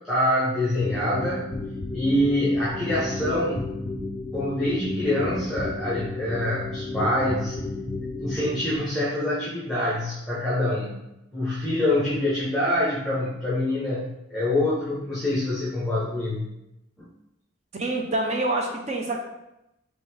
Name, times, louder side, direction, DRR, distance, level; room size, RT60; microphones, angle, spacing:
voice 1, 0.1-1.5 1.9-3.6 4.3-7.6 8.2-11.0 11.3-16.5, left 1 dB, ahead, -10 dB, 1.1 m, -25 dB
sound 1, 0.8-8.7, left 2 dB, 25° left, 0.4 m, -32 dB
voice 2, 17.7-19.2, right 2 dB, 35° right, 1 dB, 0.7 m, -26 dB
4.0 x 3.5 x 3.4 m, 0.88 s
head